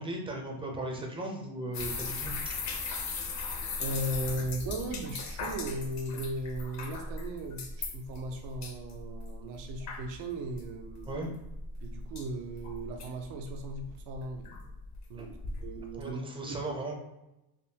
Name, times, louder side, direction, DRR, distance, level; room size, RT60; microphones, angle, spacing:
voice 1, 0.0-2.6 11.1-11.3 15.2-15.4 16.0-16.9, right 2 dB, 15° right, 0 dB, 0.4 m, -37 dB
sound 1, 1.7-16.1, left 4 dB, 40° left, 0.5 m, -38 dB
voice 2, 3.8-11.3 11.8-14.5 15.1-16.2 16.5-16.6, right 1 dB, 75° right, 4 dB, 0.6 m, -37 dB
3.5 x 2.2 x 2.7 m, 0.94 s
cardioid pair, 145°, 43 cm